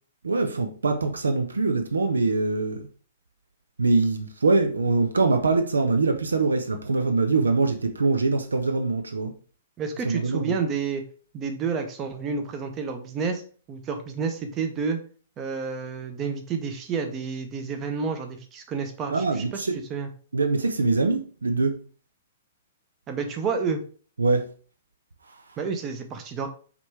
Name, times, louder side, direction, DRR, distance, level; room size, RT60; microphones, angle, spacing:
voice 1, 0.2-2.9 3.8-9.3 10.0-10.5 19.1-19.8 20.3-21.8 24.2-24.5, right 3 dB, 70° right, 0.5 m, -23 dB
voice 2, 9.8-11.0 11.3-13.4 13.7-15.0 15.4-19.6 19.9-20.1 23.1-23.8 25.6-26.5, right 5 dB, 25° right, 0.8 m, -30 dB
5.0 x 3.2 x 3.3 m
figure-of-eight pair, 110°, 0 cm